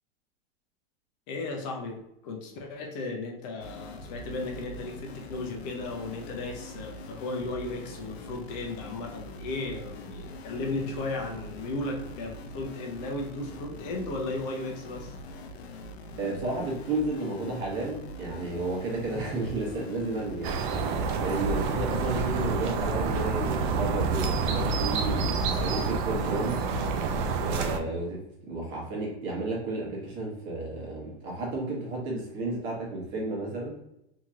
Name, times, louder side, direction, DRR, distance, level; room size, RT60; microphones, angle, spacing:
voice 1, 1.3-15.2, left 2 dB, 45° left, 2 dB, 0.6 m, -35 dB
sound 1, 3.6-22.2, left 1 dB, 85° left, 0.5 m, -43 dB
voice 2, 16.2-20.8 21.2-26.6 27.4-33.8, right 2 dB, 35° right, -2 dB, 1.1 m, -32 dB
sound 2, 20.4-27.8, right 4 dB, 50° right, 0.5 m, -28 dB
2.9 x 2.8 x 2.4 m, 0.82 s
hypercardioid pair, 130°, 31 cm